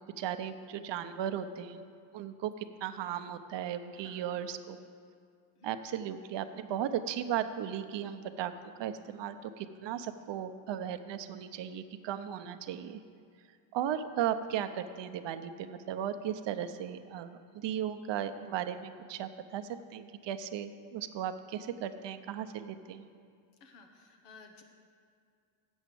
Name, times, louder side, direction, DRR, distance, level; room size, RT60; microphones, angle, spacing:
voice 1, 0.0-1.8 2.1-4.8 5.6-8.5 8.8-13.0 13.7-23.1, right 9 dB, 60° right, 9 dB, 0.7 m, -36 dB
voice 2, 3.9-4.3 5.6-5.7 23.6-24.6, left 4 dB, 90° left, 4 dB, 1.2 m, -55 dB
7.9 x 7.3 x 7.6 m, 2.2 s
cardioid pair, 95°, 49 cm